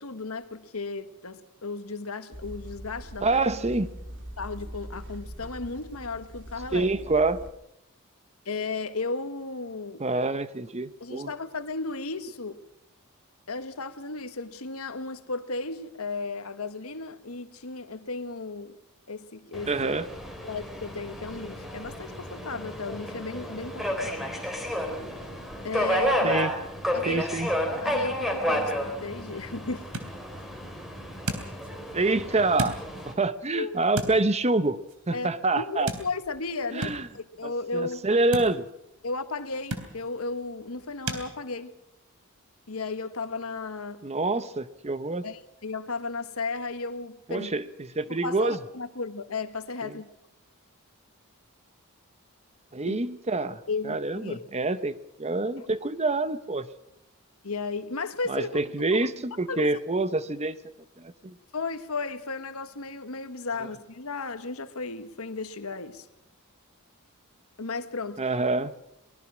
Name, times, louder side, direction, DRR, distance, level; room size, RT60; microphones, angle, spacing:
voice 1, 0.0-3.4 4.4-6.9 8.4-10.0 11.0-12.6 13.5-18.8 19.1-19.7 20.4-24.3 25.6-26.4 26.9-27.4 27.8-29.9 33.5-33.8 35.1-38.1 39.0-41.7 42.7-44.0 45.2-47.5 48.1-50.1 52.9-53.0 53.7-54.4 55.6-55.7 57.4-58.6 59.5-59.7 61.5-66.1 67.6-68.2, left 3 dB, 70° left, 1.4 m, -34 dB
sound 1, 2.3-7.5, equal, 55° right, 2.5 m, -42 dB
voice 2, 3.2-3.9 6.7-7.4 10.0-11.3 19.7-20.1 26.2-26.5 27.1-27.5 31.9-32.8 33.0-34.8 35.1-35.9 36.7-37.1 37.4-38.7 44.0-45.3 47.3-48.6 49.8-50.0 52.7-56.7 58.3-60.6 61.0-61.3 68.2-68.8, right 3 dB, 30° right, 0.9 m, -27 dB
Subway metro underground, 19.5-33.1, equal, ahead, 3.7 m, -31 dB
sound 2, 29.7-41.3, right 1 dB, 80° right, 3.3 m, -39 dB
23.5 x 20.0 x 6.2 m
head